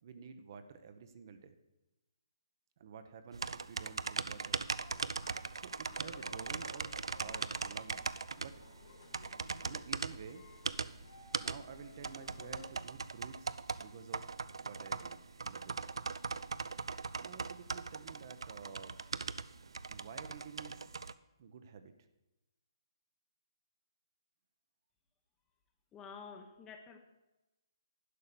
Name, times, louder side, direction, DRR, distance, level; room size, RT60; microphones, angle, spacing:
voice 1, 0.0-1.6 2.8-4.6 5.5-8.1 8.4-8.6 9.7-10.4 11.4-13.5 13.8-14.3 14.6-15.8 17.2-19.0 19.9-20.9 21.4-21.9, right 6 dB, 45° right, 9 dB, 0.9 m, -51 dB
sound 1, 3.3-21.1, right 4 dB, 80° right, 0.4 m, -40 dB
sound 2, 4.6-12.7, left 4 dB, 60° left, 1.8 m, -56 dB
voice 2, 25.9-27.0, left 5 dB, 15° left, 6 dB, 1.0 m, -49 dB
11.0 x 5.7 x 6.8 m, 0.99 s
hypercardioid pair, 150°, 3 cm